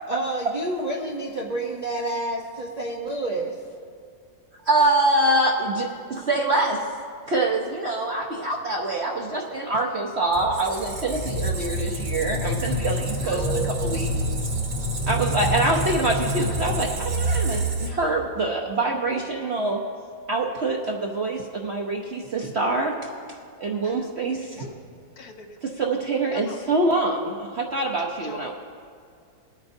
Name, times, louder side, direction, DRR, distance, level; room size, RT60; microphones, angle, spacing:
voice 1, 0.1-3.6 9.5-9.6 13.2-14.4 15.1-15.2, right 2 dB, 75° right, -3 dB, 0.3 m, -30 dB
voice 2, 4.6-7.0 7.3-14.1 15.1-19.8 20.3-24.7 25.6-28.5, right 2 dB, 55° right, 0 dB, 0.7 m, -25 dB
Squeak, 10.3-18.2, right 1 dB, 40° right, 1.1 m, -27 dB
voice 3, 25.2-25.6 26.3-26.6 28.2-28.5, left 5 dB, 65° left, 5 dB, 1.0 m, -41 dB
21.0 x 9.0 x 2.6 m, 2.3 s
omnidirectional pair, 2.0 m